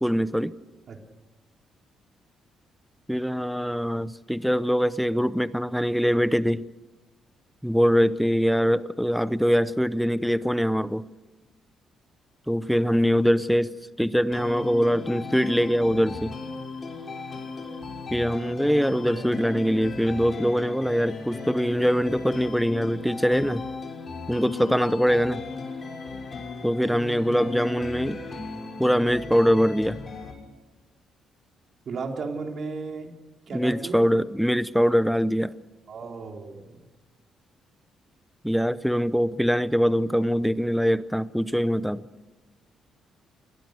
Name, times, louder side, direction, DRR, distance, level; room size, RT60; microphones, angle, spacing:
voice 1, 0.0-0.6 3.1-6.7 7.6-11.0 12.5-16.4 18.1-23.6 24.3-25.4 26.6-28.2 28.8-30.0 33.5-35.5 38.4-42.0, equal, ahead, 15 dB, 0.7 m, -23 dB
sound 1, 14.3-30.3, left 4 dB, 40° left, 6.2 m, -36 dB
voice 2, 31.9-33.1 33.5-34.1 35.9-36.8, right 4 dB, 55° right, 3 dB, 3.5 m, -34 dB
28.5 x 21.0 x 6.5 m, 1.2 s
cardioid pair, 90°, 0 cm